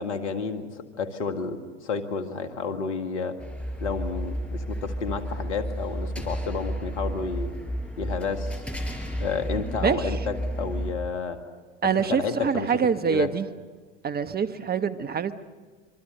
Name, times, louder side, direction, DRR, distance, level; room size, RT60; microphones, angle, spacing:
voice 1, 0.0-3.4 3.8-7.5 8.0-8.6 9.2-11.4 11.8-12.7 13.0-13.3, left 5 dB, 80° left, 8 dB, 2.2 m, -31 dB
sound 1, 3.4-10.9, equal, 5° left, 5.1 m, -32 dB
voice 2, 9.8-10.2 11.8-13.5 14.0-15.3, right 6 dB, 25° right, 11 dB, 1.2 m, -25 dB
25.5 x 25.5 x 6.7 m, 1.4 s
hypercardioid pair, 80°, 35 cm